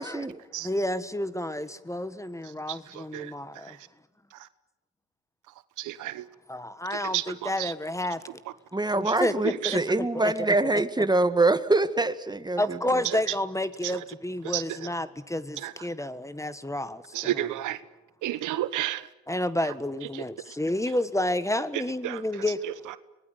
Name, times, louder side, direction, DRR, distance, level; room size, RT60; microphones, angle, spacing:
voice 1, 0.0-0.4 8.7-13.0, right 2 dB, 15° right, 1.9 m, -25 dB
voice 2, 0.6-3.8 6.5-8.2 9.0-9.8 12.6-17.5 19.3-22.6, left 1 dB, 10° left, 1.4 m, -30 dB
voice 3, 5.9-6.2 7.6-7.7 14.5-14.6 17.1-17.8 18.2-19.0 22.0-22.2, right 14 dB, 75° right, 1.1 m, -30 dB
25.0 x 20.0 x 9.3 m
supercardioid pair, 70°, 30 cm